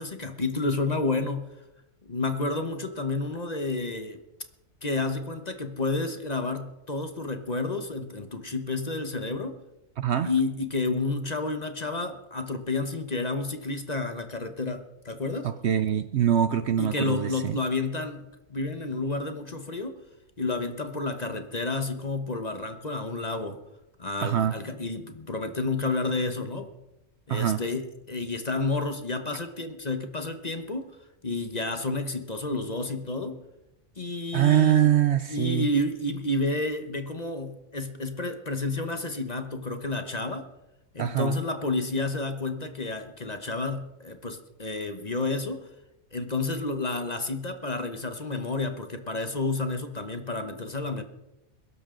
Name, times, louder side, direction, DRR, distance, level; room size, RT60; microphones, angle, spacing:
voice 1, 0.0-1.6 2.0-4.2 4.8-9.5 10.2-15.5 16.8-19.9 20.4-23.6 24.0-26.7 27.3-31.0 31.2-33.4 34.0-34.9 35.3-40.5 40.9-45.7 46.1-51.0, left 3 dB, 30° left, 7 dB, 1.1 m, -30 dB
voice 2, 10.0-10.3 15.4-17.6 24.2-24.5 27.3-27.6 34.3-35.7 41.0-41.4, right 10 dB, 60° right, 12 dB, 0.8 m, -23 dB
21.5 x 12.5 x 3.8 m, 0.94 s
omnidirectional pair, 1.4 m